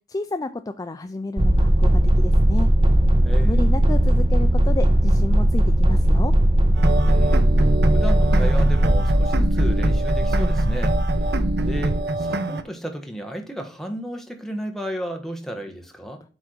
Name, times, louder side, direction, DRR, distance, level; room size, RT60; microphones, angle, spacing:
voice 1, 0.1-1.9 2.2-2.7 3.4-6.3, left 2 dB, 20° left, 0.4 m, -30 dB
sound 1, 1.4-12.0, right 1 dB, 30° right, 0.7 m, -18 dB
voice 2, 3.2-3.7 7.0-7.5 7.9-11.4 11.6-16.2, equal, ahead, 1.2 m, -33 dB
sound 2, 6.7-12.6, right 2 dB, 65° right, 0.7 m, -26 dB
8.1 x 3.6 x 6.2 m
head